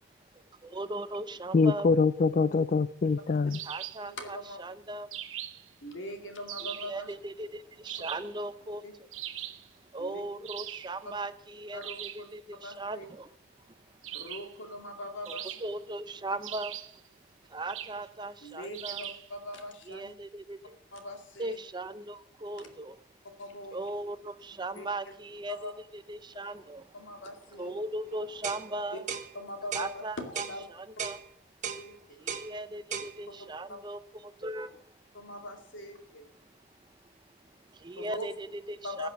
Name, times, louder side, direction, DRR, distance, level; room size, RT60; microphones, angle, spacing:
voice 1, 0.3-1.9 3.6-5.1 6.8-9.1 9.9-13.3 13.6-14.2 15.3-16.8 17.5-19.1 19.9-20.8 21.4-23.1 23.7-27.1 27.6-29.1 29.7-31.2 32.2-35.0 36.4-39.1, right 2 dB, 20° right, 12 dB, 0.6 m, -39 dB
voice 2, 1.5-3.6, left 4 dB, 40° left, 15 dB, 0.4 m, -24 dB
sound 1, 3.5-4.1 5.1-5.7 6.5-7.0 7.8-8.4 9.1-9.7 10.4-11.0 11.8-12.3 14.0-14.6 15.2-15.9 16.4-17.0 17.7-18.0 18.7-19.3, right 12 dB, 80° right, 1.1 m, -40 dB
voice 3, 4.0-4.6 5.8-7.1 8.8-8.9 10.0-10.2 11.7-12.3 12.6-13.1 14.1-15.5 18.4-20.1 20.9-21.6 22.6-22.7 23.4-23.8 24.8-24.9 25.5-25.7 26.9-27.8 29.3-30.6 31.8-32.2 33.7-33.8 35.1-36.3 38.0-38.3 38.8-39.1, left 1 dB, 70° left, 4 dB, 2.3 m, -41 dB
sound 2, 28.4-28.7 29.1-29.3 29.7-29.9 30.4-30.6 31.0-31.2 31.6-31.8 32.3-32.5 32.9-33.1, right 7 dB, 40° right, 1.3 m, -35 dB
15.0 x 7.9 x 5.9 m, 0.82 s
head